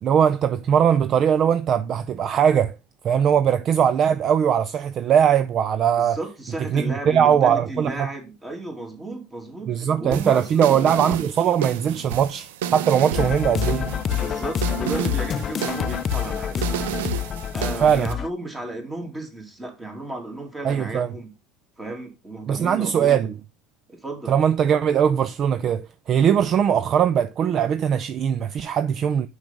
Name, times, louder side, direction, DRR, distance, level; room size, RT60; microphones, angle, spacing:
voice 1, 0.0-2.7 3.0-6.2 6.7-8.1 9.7-13.8 17.8-18.1 20.6-21.1 22.5-23.3 24.3-29.3, right 8 dB, 40° right, 0.5 m, -20 dB
voice 2, 6.0-10.8 12.9-13.4 14.1-16.9 17.5-21.3 21.8-23.2 23.9-24.3, right 2 dB, 15° right, 2.5 m, -34 dB
sound 1, 10.1-18.1, right 10 dB, 85° right, 0.8 m, -31 dB
sound 2, 13.1-18.3, left 8 dB, 35° left, 0.5 m, -27 dB
6.0 x 5.6 x 5.1 m
supercardioid pair, 115°, 0 cm